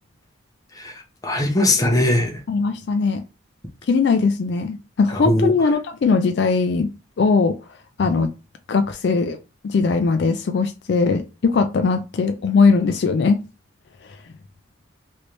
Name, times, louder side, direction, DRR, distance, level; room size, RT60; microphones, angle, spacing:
voice 1, 0.8-2.4 5.1-5.5, left 1 dB, 15° left, 0.6 m, -20 dB
voice 2, 2.5-3.2 3.9-6.9 7.2-7.6 8.0-8.3 8.7-9.4 9.6-13.4, left 4 dB, 55° left, 0.3 m, -19 dB
3.1 x 2.6 x 3.1 m
head